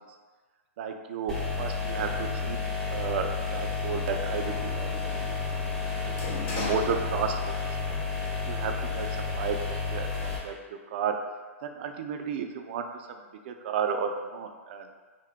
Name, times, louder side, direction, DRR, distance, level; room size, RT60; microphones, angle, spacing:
voice 1, 0.8-2.6 2.9-4.9 6.1-6.2 6.4-7.5 8.5-9.6 9.9-11.2 11.6-12.9 13.5-14.9, right 6 dB, 50° right, 5 dB, 0.3 m, -32 dB
sound 1, 1.3-10.4, left 4 dB, 5° left, 0.7 m, -31 dB
Sliding door, 2.9-7.7 8.1-9.0, left 3 dB, 40° left, 0.7 m, -40 dB
2.6 x 2.2 x 3.5 m, 1.4 s
hypercardioid pair, 135°, 8 cm